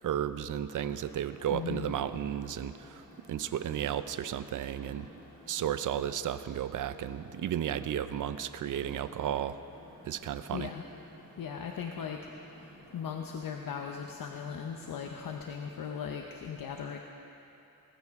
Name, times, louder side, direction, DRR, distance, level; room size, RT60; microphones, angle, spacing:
voice 1, 0.0-3.0 3.3-5.1 5.5-9.6 10.1-10.7, right 10 dB, 60° right, 13 dB, 0.5 m, -33 dB
sound 1, 0.7-15.9, equal, 25° left, 4.0 m, -55 dB
voice 2, 1.5-1.9 10.5-10.8 11.4-12.2 12.9-17.0, left 7 dB, 70° left, 3 dB, 0.7 m, -38 dB
19.0 x 14.5 x 3.6 m, 2.9 s
wide cardioid pair, 175°, 36 cm